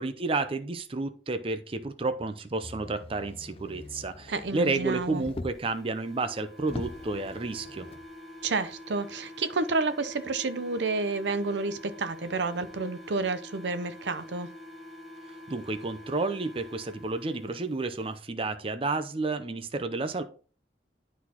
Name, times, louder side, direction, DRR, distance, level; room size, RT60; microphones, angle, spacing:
voice 1, 0.0-7.9 15.5-20.2, right 3 dB, 30° right, 0.6 m, -31 dB
Motor vehicle (road), 2.6-5.8 6.3-6.4 6.6-8.1 8.9-9.0, left 2 dB, 35° left, 0.5 m, -43 dB
voice 2, 4.3-5.2 8.4-14.5, right 3 dB, 80° right, 0.6 m, -30 dB
sound 1, 5.5-17.6, left 1 dB, ahead, 1.4 m, -46 dB
11.5 x 4.1 x 2.9 m
head